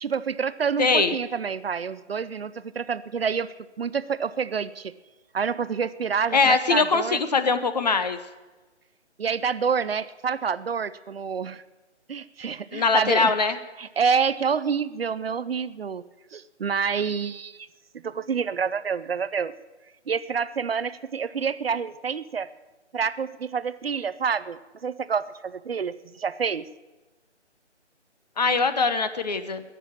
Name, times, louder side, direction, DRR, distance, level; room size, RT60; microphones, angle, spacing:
voice 1, 0.0-4.9 5.3-7.2 9.2-11.6 12.1-13.3 13.8-16.0 16.3-17.7 18.0-19.5 20.1-22.5 22.9-26.7, right 6 dB, 55° right, 15 dB, 0.6 m, -28 dB
voice 2, 0.8-1.2 6.3-8.2 12.7-13.6 28.4-29.6, left 4 dB, 35° left, 11 dB, 0.8 m, -22 dB
17.0 x 6.9 x 8.6 m, 1.2 s
figure-of-eight pair, 155°, 35 cm